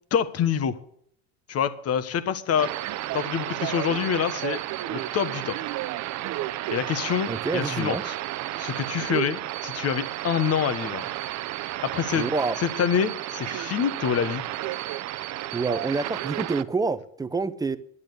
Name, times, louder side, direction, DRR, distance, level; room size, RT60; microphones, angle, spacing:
voice 1, 0.1-0.8 1.5-2.7 3.1-4.6 4.9-5.6 6.7-8.1 8.6-11.0 11.8-12.3 12.8-14.4, left 8 dB, 35° left, 1.2 m, -26 dB
sound 1, 2.6-16.6, right 15 dB, 45° right, 0.7 m, -32 dB
voice 2, 7.3-8.0 12.1-12.6 15.5-17.8, right 4 dB, 10° right, 0.7 m, -27 dB
11.0 x 8.7 x 8.3 m
supercardioid pair, 115°, 41 cm